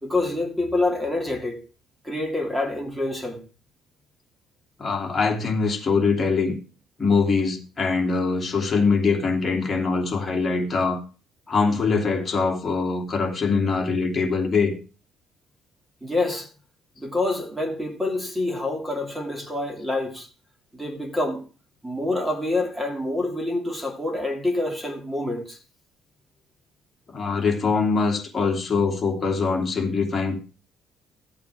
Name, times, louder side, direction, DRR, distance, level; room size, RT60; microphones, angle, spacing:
voice 1, 0.0-1.6 2.0-3.4 16.0-16.5 17.0-20.3 20.7-21.4 21.8-25.6, left 2 dB, 5° right, 2.3 m, -27 dB
voice 2, 4.8-6.6 7.0-11.0 11.5-14.7 27.1-30.4, left 4 dB, 25° left, 2.9 m, -23 dB
14.0 x 8.6 x 3.5 m
cardioid pair, 135°, 0 cm